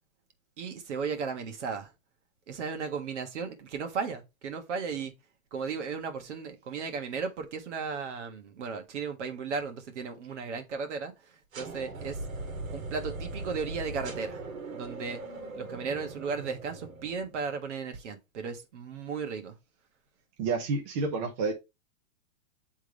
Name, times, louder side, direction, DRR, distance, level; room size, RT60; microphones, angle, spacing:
voice 1, 0.6-1.9 2.5-5.1 5.5-12.2 12.7-14.4 14.7-15.2 15.5-19.6, right 5 dB, 60° right, 1.5 m, -35 dB
sound 1, 11.5-17.5, right 3 dB, 85° right, 1.9 m, -40 dB
voice 2, 20.4-21.5, right 4 dB, 25° right, 0.7 m, -29 dB
8.2 x 3.6 x 3.2 m
hypercardioid pair, 165°, 40 cm